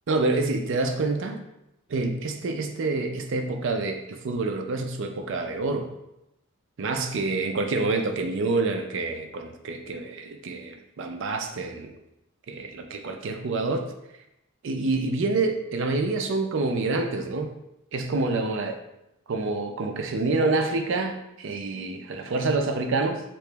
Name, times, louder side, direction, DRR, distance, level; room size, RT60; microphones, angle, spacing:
voice 1, 0.1-1.4 1.9-5.9 6.8-11.9 12.5-13.9 14.6-17.5 17.9-18.8 19.3-23.2, right 3 dB, 65° right, 6 dB, 0.4 m, -27 dB
3.1 x 2.9 x 3.3 m, 0.87 s
head